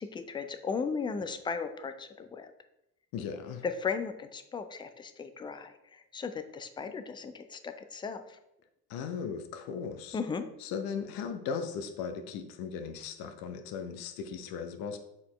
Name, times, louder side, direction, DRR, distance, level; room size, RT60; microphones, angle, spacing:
voice 1, 0.0-2.5 3.6-8.4 10.1-10.5, left 5 dB, 10° left, 9 dB, 0.3 m, -36 dB
voice 2, 3.1-3.6 8.9-10.2 10.6-15.0, left 6 dB, 50° left, 7 dB, 0.8 m, -37 dB
7.0 x 4.3 x 3.2 m, 0.84 s
figure-of-eight pair, 55°, 48 cm